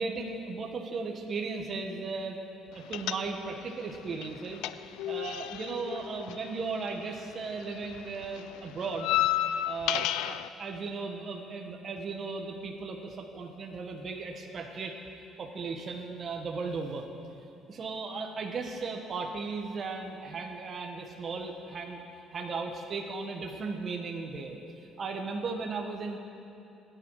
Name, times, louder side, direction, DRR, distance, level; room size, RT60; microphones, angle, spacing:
voice 1, 0.0-2.4 2.7-4.6 5.1-9.1 9.6-15.0 15.4-17.0 17.7-22.0 22.3-26.2, right 4 dB, 40° right, 2 dB, 1.5 m, -36 dB
sound 1, 2.9-3.7 3.9-7.3 7.6-10.5, left 13 dB, 90° left, 0.4 m, -32 dB
24.0 x 10.5 x 4.9 m, 2.8 s
cardioid pair, 115°, 0 cm